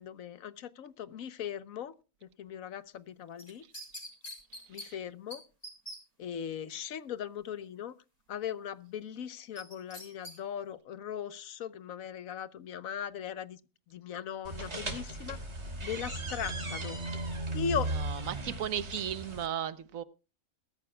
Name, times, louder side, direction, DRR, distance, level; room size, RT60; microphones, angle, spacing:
voice 1, 0.0-1.9 2.4-3.6 4.7-5.4 6.2-7.9 8.3-13.6 13.9-15.4 15.8-17.0 17.5-17.9, left 8 dB, 85° left, 1.3 m, -38 dB
sound 1, 3.4-4.9 5.3-5.4 5.6-6.0 9.6-10.4 10.7-10.8, equal, 30° left, 4.5 m, -43 dB
sound 2, 14.4-19.5, right 2 dB, 55° right, 3.2 m, -36 dB
voice 2, 18.0-20.0, right 10 dB, 80° right, 1.3 m, -35 dB
21.5 x 13.5 x 2.2 m
omnidirectional pair, 1.4 m